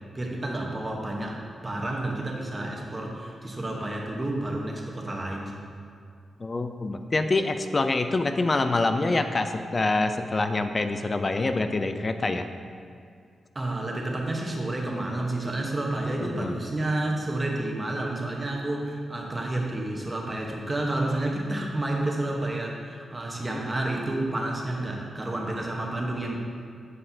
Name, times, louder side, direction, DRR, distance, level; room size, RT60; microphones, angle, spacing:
voice 1, 0.1-5.7 13.5-26.4, right 1 dB, 25° right, 0 dB, 1.0 m, -30 dB
voice 2, 6.4-12.5 16.2-16.6, left 2 dB, 40° left, 8 dB, 0.4 m, -26 dB
8.0 x 5.3 x 2.8 m, 2.3 s
cardioid pair, 65°, 0 cm